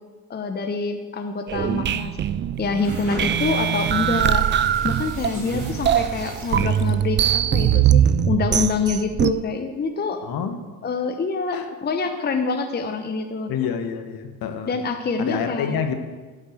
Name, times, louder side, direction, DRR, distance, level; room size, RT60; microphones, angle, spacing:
voice 1, 0.3-2.2 2.6-10.2 10.8-13.5 14.7-15.8, left 4 dB, 20° left, 6 dB, 0.9 m, -26 dB
sound 1, 1.5-9.3, right 10 dB, 25° right, 0.4 m, -21 dB
sound 2, 2.6-7.1, right 3 dB, 45° right, 4.6 m, -38 dB
voice 2, 5.3-5.7 10.2-10.6 11.5-11.7 13.5-14.7 15.2-16.0, left 7 dB, 50° left, 7 dB, 1.5 m, -28 dB
12.0 x 6.4 x 7.9 m, 1.4 s
hypercardioid pair, 80°, 44 cm